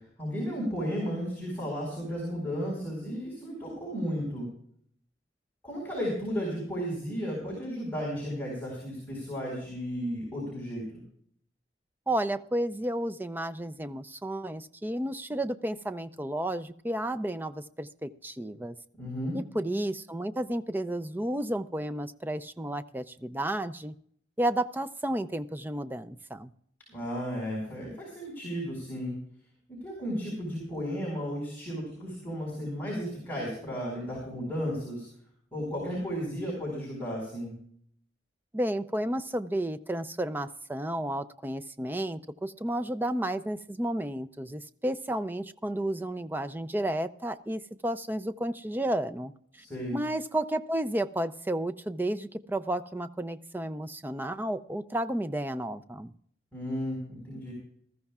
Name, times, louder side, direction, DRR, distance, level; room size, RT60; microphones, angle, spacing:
voice 1, 0.2-4.5 5.6-11.0 19.0-19.4 26.9-29.2 29.7-35.1 35.5-37.5 49.6-50.0 56.5-57.5, equal, 10° left, -6 dB, 4.9 m, -34 dB
voice 2, 12.1-18.7 19.3-23.9 24.4-26.5 38.5-49.3 49.9-56.1, right 1 dB, 10° right, 10 dB, 0.5 m, -32 dB
19.5 x 14.0 x 2.4 m, 0.64 s
head